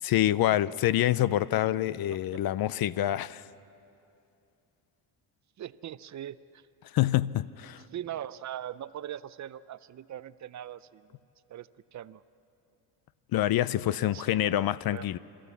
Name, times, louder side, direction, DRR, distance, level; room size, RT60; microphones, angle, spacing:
voice 1, 0.0-3.4 6.9-7.8 13.3-15.2, left 13 dB, 55° left, 0.5 m, -26 dB
voice 2, 5.6-6.6 7.9-11.0 11.5-12.2 13.9-14.5 14.9-15.1, right 11 dB, 40° right, 0.5 m, -41 dB
27.0 x 14.0 x 8.3 m
cardioid pair, 110°, 44 cm